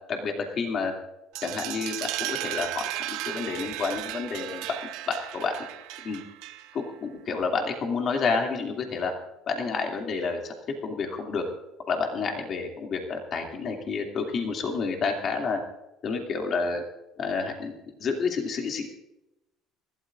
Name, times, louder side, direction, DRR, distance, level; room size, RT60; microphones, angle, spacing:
voice 1, 0.1-0.9 1.4-4.8 5.1-5.5 6.0-6.2 6.7-9.1 9.5-10.5 10.8-11.4 11.9-15.6 16.0-16.8 17.2-17.7 18.0-18.9, left 4 dB, 50° left, 2 dB, 2.5 m, -29 dB
sound 1, 1.3-6.9, right 15 dB, 80° right, 0.8 m, -35 dB
26.0 x 12.5 x 2.5 m, 0.90 s
supercardioid pair, 95°, 0 cm